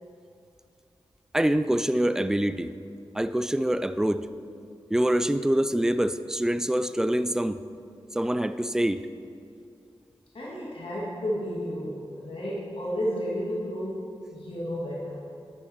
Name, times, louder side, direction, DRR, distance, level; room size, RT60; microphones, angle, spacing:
voice 1, 1.3-2.7 3.1-4.3 4.9-7.6 8.1-9.1, right 1 dB, 5° right, 12 dB, 0.4 m, -25 dB
voice 2, 10.3-15.2, equal, 55° left, -6 dB, 2.2 m, -32 dB
10.5 x 7.1 x 4.5 m, 2.4 s
cardioid pair, 50°, 11 cm